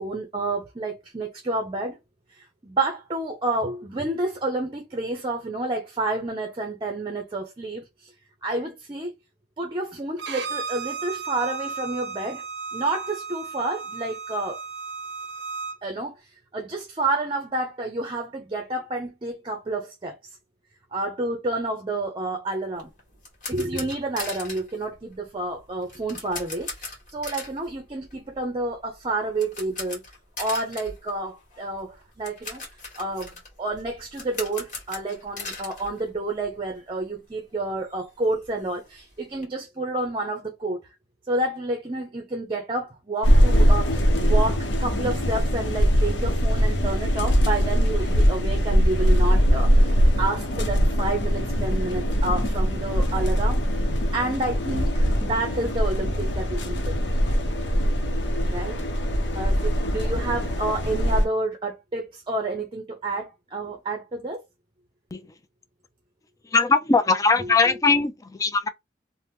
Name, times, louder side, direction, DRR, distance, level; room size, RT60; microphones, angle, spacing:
voice 1, 0.0-2.0 2.3-8.1 8.4-9.1 9.6-12.4 12.7-14.6 15.8-16.1 16.5-20.2 20.9-22.9 23.5-30.0 30.4-32.6 33.0-33.3 33.6-40.8 41.3-57.0 58.5-58.8 59.3-64.4, right 2 dB, 30° right, 0.6 m, -29 dB
Bowed string instrument, 10.2-15.8, right 5 dB, 70° right, 0.5 m, -34 dB
sound 1, 22.8-36.7 37.0-37.1 37.6-37.7 37.9-39.4, left 3 dB, 50° left, 1.3 m, -40 dB
sound 2, 43.2-61.3, equal, 90° left, 0.7 m, -22 dB
voice 2, 66.4-68.7, left 4 dB, 20° left, 0.4 m, -20 dB
2.8 x 2.1 x 3.4 m
head